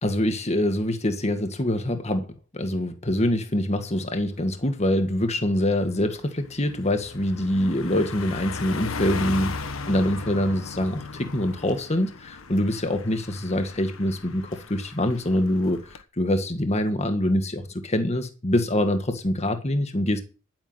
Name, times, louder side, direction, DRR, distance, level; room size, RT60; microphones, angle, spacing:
voice 1, 0.0-20.2, left 1 dB, 35° left, 1.8 m, -25 dB
Car passing by, 4.4-4.7 5.1-16.0, left 4 dB, 85° left, 1.3 m, -37 dB
10.5 x 9.3 x 7.9 m
head